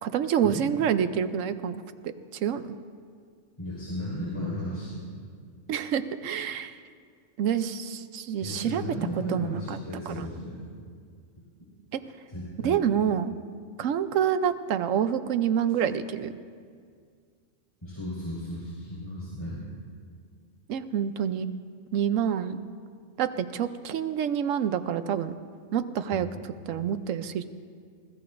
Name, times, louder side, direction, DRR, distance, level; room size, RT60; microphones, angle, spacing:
voice 1, 0.0-2.7 5.7-6.8 7.4-8.8 9.3-9.8 10.1-10.2 11.9-12.0 12.6-13.3 13.8-16.3 20.7-21.5 21.9-22.6 23.2-25.3 25.7-26.3 26.7-27.5, right 8 dB, 85° right, 11 dB, 1.0 m, -27 dB
voice 2, 3.6-5.0 8.4-10.6 12.3-12.8 17.8-19.6 26.1-26.3, equal, 20° left, -9 dB, 4.5 m, -35 dB
29.0 x 15.5 x 2.6 m, 2.1 s
omnidirectional pair, 1.3 m